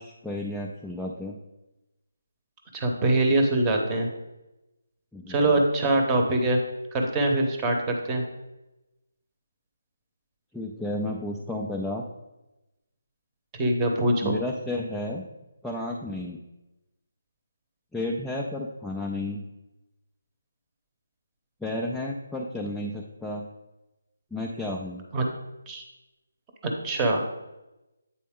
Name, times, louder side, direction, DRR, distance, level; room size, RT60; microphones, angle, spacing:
voice 1, 0.0-1.4 5.1-5.6 10.5-12.1 14.2-15.2 15.6-16.4 17.9-19.4 21.6-23.5 24.3-25.0, left 1 dB, ahead, -2 dB, 0.3 m, -32 dB
voice 2, 2.7-4.1 5.3-6.6 6.9-8.2 13.6-14.3 25.1-25.3 25.7-25.8 26.6-27.2, right 2 dB, 15° right, 2 dB, 0.8 m, -23 dB
8.4 x 4.1 x 3.6 m, 0.99 s
hypercardioid pair, 165°, 0 cm